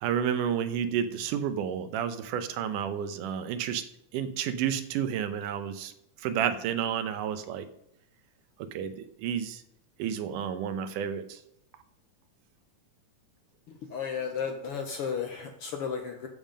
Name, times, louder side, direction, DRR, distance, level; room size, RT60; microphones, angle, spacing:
voice 1, 0.0-3.8 4.1-5.9 6.2-7.7 8.7-9.6 10.0-11.4, right 8 dB, 85° right, 10 dB, 2.4 m, -31 dB
voice 2, 13.9-16.3, left 6 dB, 75° left, 4 dB, 1.3 m, -33 dB
10.5 x 7.4 x 5.2 m, 0.79 s
omnidirectional pair, 3.6 m